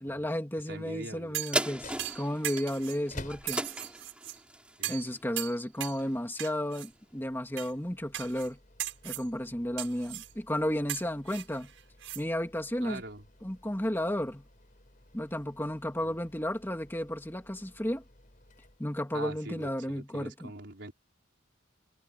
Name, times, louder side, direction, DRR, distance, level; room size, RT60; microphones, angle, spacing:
voice 1, 0.0-3.7 4.9-8.6 9.0-11.7 12.1-13.0 13.4-14.4 15.1-18.0 18.8-20.5, equal, 10° left, 2.6 m, -33 dB
voice 2, 0.7-1.4 4.8-4.9 12.8-13.2 16.0-16.1 19.1-20.9, right 2 dB, 60° right, 4.8 m, -43 dB
sound 1, 1.3-1.6 2.0-3.0 3.5-4.4 4.8-5.1 5.4-6.0 6.4-6.9 7.6-7.7 8.1-8.5 8.8-9.3 9.8-10.3 10.9-12.2 12.6-12.7, right 13 dB, 80° right, 5.2 m, -38 dB
sound 2, 1.5-6.3 6.8-6.9, right 1 dB, 5° right, 3.8 m, -37 dB
sound 3, 1.6-19.4, left 2 dB, 40° left, 7.2 m, -54 dB
head